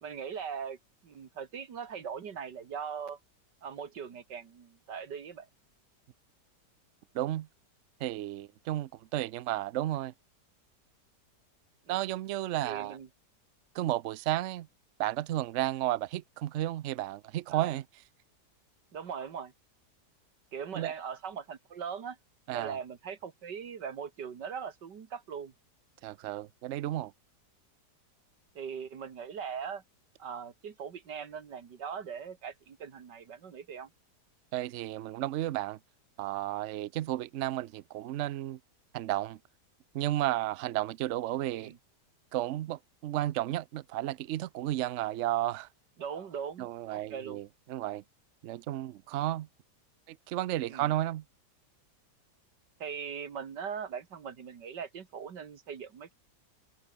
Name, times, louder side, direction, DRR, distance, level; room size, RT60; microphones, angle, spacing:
voice 1, 0.0-0.8 1.0-3.2 3.6-5.5 11.9-12.0 12.6-13.1 17.5-17.8 18.9-19.5 20.5-22.2 22.5-25.5 28.6-29.8 30.2-33.9 41.5-41.8 46.0-47.4 50.6-50.9 52.8-56.1, right 7 dB, 85° right, 2.4 m, -40 dB
voice 2, 7.1-7.5 8.0-10.1 11.9-13.0 13.7-14.7 15.0-17.8 20.7-20.9 22.5-22.8 26.0-27.1 34.5-35.8 36.2-38.6 38.9-39.4 39.9-41.7 42.3-45.7 46.6-48.0 48.4-49.5 50.1-51.2, right 14 dB, 70° right, 0.7 m, -33 dB
open air
omnidirectional pair, 1.8 m